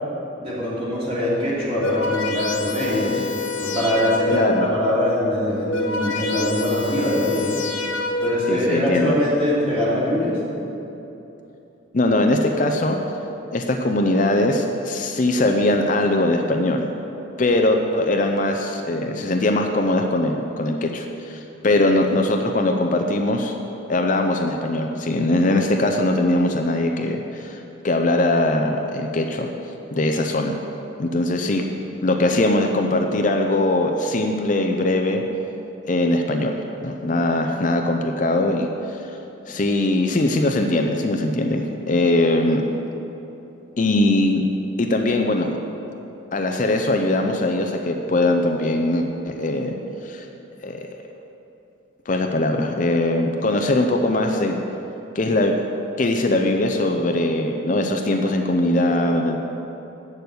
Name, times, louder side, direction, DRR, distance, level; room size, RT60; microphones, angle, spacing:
voice 1, 0.4-3.2 3.6-7.6 8.2-10.3, left 1 dB, 30° right, -8 dB, 2.7 m, -22 dB
sound 1, 1.5-4.7 5.4-8.6, left 3 dB, 80° left, 1.2 m, -27 dB
voice 2, 4.3-4.7 8.5-9.2 11.9-13.0 13.5-16.9 17.4-23.5 23.9-29.5 29.9-30.6 31.0-31.6 32.0-35.2 35.8-36.5 36.8-39.1 39.5-42.6 43.8-44.4 44.8-45.6 46.3-49.7 50.0-50.3 50.6-50.9 52.1-54.6 55.1-55.6 56.0-59.4, left 1 dB, 40° left, 3 dB, 0.5 m, -21 dB
8.3 x 6.8 x 7.9 m, 3.0 s
head